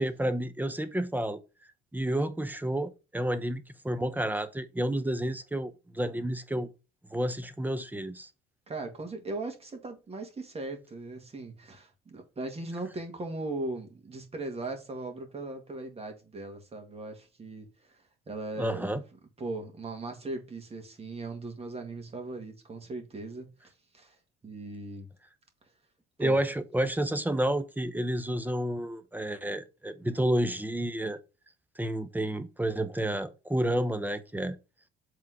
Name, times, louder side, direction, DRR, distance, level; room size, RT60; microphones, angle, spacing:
voice 1, 0.0-1.4 1.9-6.7 7.1-8.3 18.6-19.0 26.2-31.2 31.8-34.6, right 1 dB, 10° right, 0.8 m, -30 dB
voice 2, 8.7-18.9 19.4-23.7 23.9-24.2 24.4-25.1 26.2-26.4, right 2 dB, 30° right, 2.0 m, -38 dB
5.6 x 3.8 x 4.9 m
supercardioid pair, 80°, 20 cm